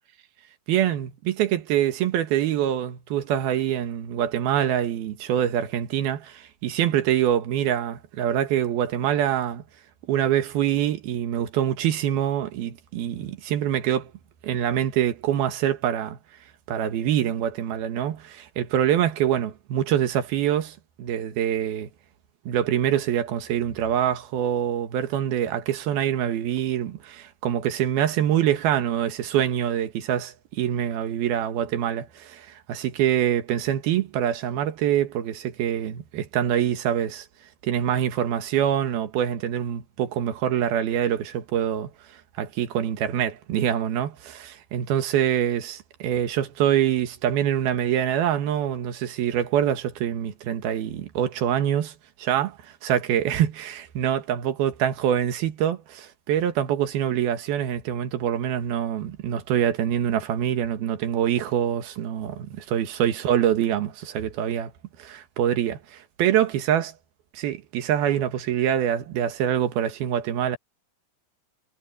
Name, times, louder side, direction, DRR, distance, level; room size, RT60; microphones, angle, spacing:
voice 1, 0.7-9.6 10.1-14.1 14.4-16.2 16.7-21.9 22.5-37.3 37.6-41.9 42.4-51.9 52.2-52.6 52.8-64.7 65.0-66.9 67.3-70.6, right 10 dB, 90° right, 3.5 m, -25 dB
omnidirectional pair, 4.2 m